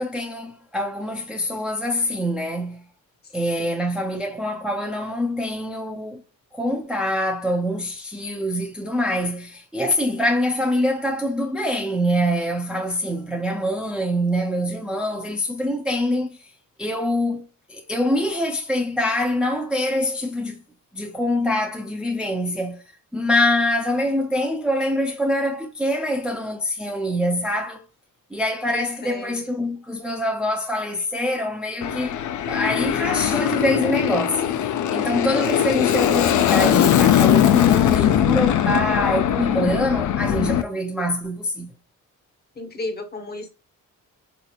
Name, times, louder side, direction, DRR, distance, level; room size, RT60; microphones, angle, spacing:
voice 1, 0.0-2.8 3.3-6.2 6.5-16.5 16.8-20.6 20.9-22.8 23.1-27.8 28.3-41.7, left 1 dB, 5° right, 0.4 m, -25 dB
voice 2, 28.7-29.4 42.6-43.5, left 2 dB, 30° left, 0.8 m, -33 dB
Aircraft, 31.8-40.6, left 10 dB, 60° left, 0.5 m, -20 dB
4.0 x 2.9 x 2.3 m
cardioid pair, 110°, 34 cm